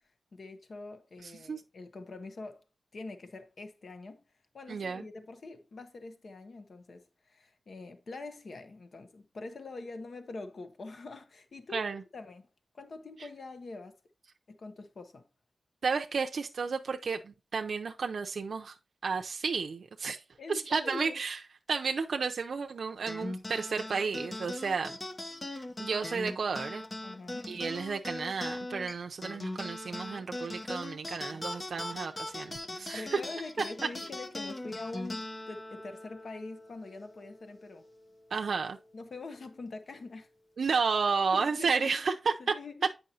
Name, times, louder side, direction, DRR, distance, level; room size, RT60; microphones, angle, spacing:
voice 1, 0.3-2.6 2.9-4.2 4.5-11.9 12.1-12.5 12.7-14.0 14.5-15.3 20.4-21.2 27.0-27.5 32.9-37.8 38.9-40.3 41.3-42.0 42.4-42.9, left 3 dB, 55° left, 0.9 m, -44 dB
voice 2, 1.2-1.6 4.7-5.0 11.7-12.0 15.8-18.8 19.0-20.2 20.5-21.4 21.7-25.0 25.5-26.8 27.5-33.2 33.6-33.7 38.3-38.8 40.6-42.5, right 5 dB, 65° right, 0.6 m, -32 dB
sound 1, 23.1-37.8, left 1 dB, 20° left, 0.6 m, -40 dB
8.9 x 5.6 x 2.8 m
wide cardioid pair, 165°, 0 cm